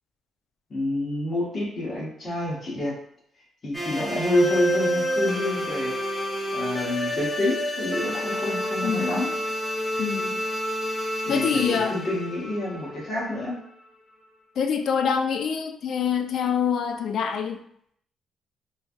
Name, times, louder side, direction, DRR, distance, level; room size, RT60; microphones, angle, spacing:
voice 1, 0.7-3.0 3.6-6.0 6.5-9.3 11.2-13.6, left 1 dB, 35° left, -5 dB, 1.2 m, -28 dB
sound 1, 3.7-13.6, equal, 5° left, 0.5 m, -29 dB
voice 2, 8.8-9.2 10.0-10.4 11.3-12.0 14.6-17.6, left 7 dB, 60° left, 7 dB, 0.3 m, -25 dB
3.2 x 2.2 x 2.5 m, 0.67 s
cardioid pair, 130°, 0 cm